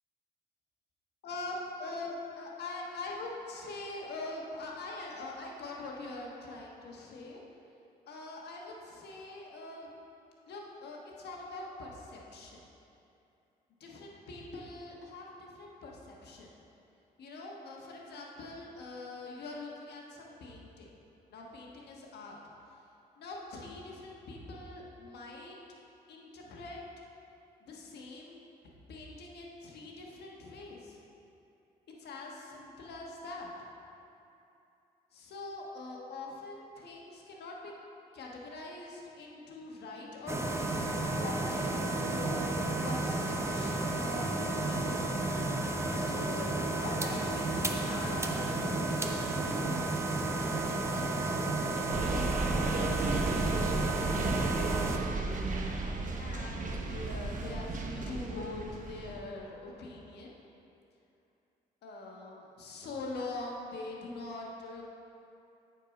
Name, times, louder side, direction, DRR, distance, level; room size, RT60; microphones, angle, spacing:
voice 1, 1.2-7.4 8.1-9.9 10.5-12.6 13.8-16.5 17.2-20.9 21.3-22.4 23.2-25.6 26.1-26.8 27.6-28.4 28.9-31.0 32.0-33.5 35.1-37.7 38.1-40.8 41.2-42.6 42.8-45.0 45.8-51.3 51.7-52.3 52.7-53.8 54.4-55.0 56.2-60.4 61.8-64.8, left 2 dB, 75° left, -1 dB, 1.3 m, -43 dB
sound 1, 40.3-55.0, right 2 dB, 15° right, 0.8 m, -32 dB
sound 2, 51.9-59.2, right 3 dB, 50° right, 0.9 m, -34 dB
9.0 x 4.6 x 5.1 m, 2.7 s
supercardioid pair, 65°, 17 cm